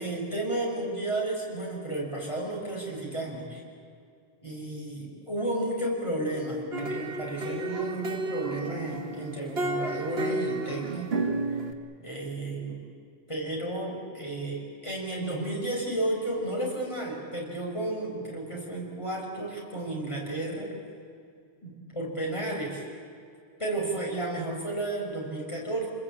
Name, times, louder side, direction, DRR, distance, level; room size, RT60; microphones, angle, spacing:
voice 1, 0.0-3.6 4.4-11.3 12.0-12.8 13.3-20.7 21.6-22.8 23.6-25.9, right 1 dB, 30° left, -2 dB, 6.1 m, -32 dB
sound 1, 6.7-11.7, right 2 dB, 65° right, 1.8 m, -32 dB
28.5 x 20.5 x 8.7 m, 2.3 s
omnidirectional pair, 1.1 m